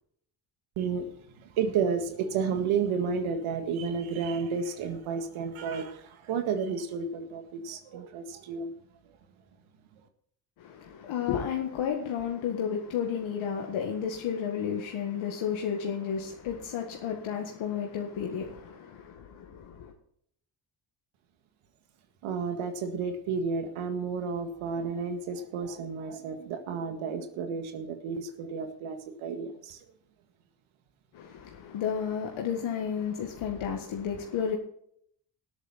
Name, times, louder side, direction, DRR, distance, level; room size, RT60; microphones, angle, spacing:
voice 1, 0.8-1.1 1.4-8.7 22.2-29.8, right 5 dB, 80° right, 1.9 m, -32 dB
voice 2, 10.6-19.9 31.1-34.6, left 8 dB, 75° left, 1.8 m, -32 dB
18.0 x 8.3 x 4.2 m
supercardioid pair, 55°, 48 cm